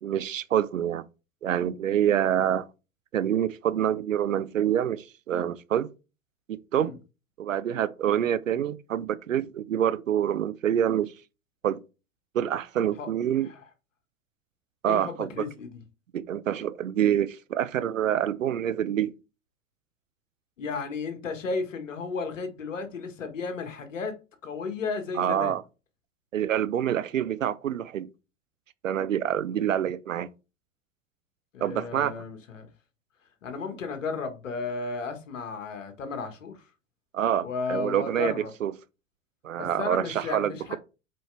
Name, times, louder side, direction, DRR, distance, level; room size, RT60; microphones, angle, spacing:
voice 1, 0.0-1.1 1.4-2.7 3.1-5.9 6.5-6.9 7.4-11.1 11.6-11.8 12.3-13.5 14.8-15.5 16.1-19.1 25.1-25.6 26.3-28.1 28.8-30.3 31.6-32.1 37.1-38.7 39.4-40.8, right 10 dB, 85° right, 0.7 m, -26 dB
voice 2, 14.8-15.7 20.6-24.2 24.4-25.5 31.5-32.7 33.4-36.6 37.4-38.5 39.6-40.8, left 4 dB, 75° left, 1.7 m, -34 dB
7.7 x 4.4 x 3.4 m
hypercardioid pair, 95°, 38 cm